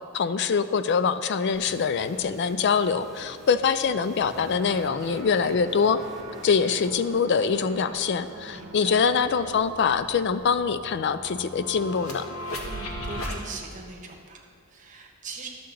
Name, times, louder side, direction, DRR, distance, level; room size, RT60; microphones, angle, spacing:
voice 1, 0.1-6.0 6.4-12.2, left 6 dB, 55° left, 12 dB, 0.4 m, -24 dB
sound 1, 1.5-6.9, equal, ahead, 1.0 m, -47 dB
sound 2, 4.2-9.6, right 3 dB, 55° right, 0.9 m, -44 dB
sound 3, 8.4-13.4, equal, 80° left, 1.2 m, -38 dB
voice 2, 8.5-9.0 12.6-15.5, right 4 dB, 35° right, 1 dB, 1.1 m, -41 dB
11.5 x 7.0 x 3.8 m, 2.2 s
head